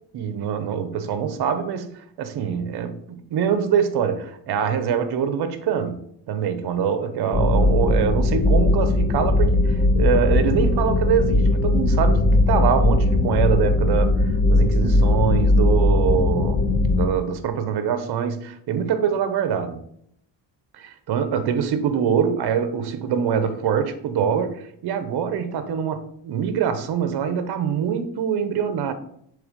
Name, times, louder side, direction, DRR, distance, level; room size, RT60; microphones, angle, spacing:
voice 1, 0.1-6.0 6.3-19.8 20.7-28.9, right 7 dB, 60° right, 0.9 m, -24 dB
sound 1, 7.3-17.1, left 2 dB, 20° left, 0.4 m, -19 dB
6.9 x 3.5 x 5.1 m
cardioid pair, 145°, 44 cm